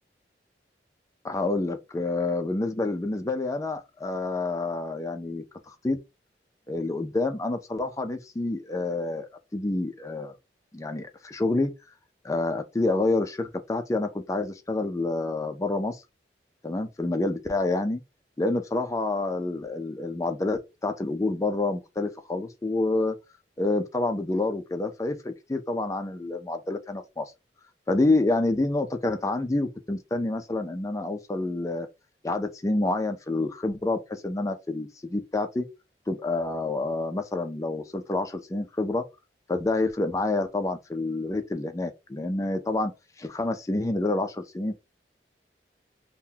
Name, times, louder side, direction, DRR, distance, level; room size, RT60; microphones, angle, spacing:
voice 1, 1.2-6.0 6.7-9.3 9.5-10.3 10.7-11.7 12.2-16.0 16.6-18.0 18.4-23.2 23.6-27.3 27.9-31.9 32.2-35.7 36.1-39.0 39.5-42.9 43.2-44.7, left 2 dB, 20° left, 0.4 m, -28 dB
3.7 x 2.1 x 2.8 m
head